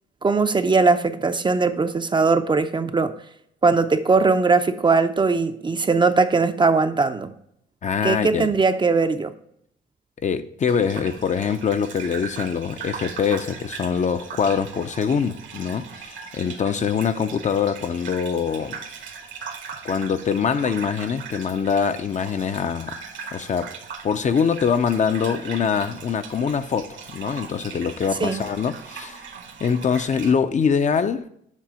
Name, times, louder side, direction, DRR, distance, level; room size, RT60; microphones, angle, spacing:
voice 1, 0.2-3.1 3.6-7.3 8.0-9.3 28.2-28.4, right 4 dB, 25° right, 0.4 m, -20 dB
voice 2, 7.8-8.5 10.2-18.8 19.8-22.9 23.3-23.7 24.0-29.2 29.6-31.3, left 6 dB, 40° left, 0.5 m, -24 dB
Gurgling / Bathtub (filling or washing), 10.7-30.3, right 6 dB, 75° right, 1.2 m, -39 dB
7.4 x 3.3 x 6.2 m
cardioid pair, 90°, 20 cm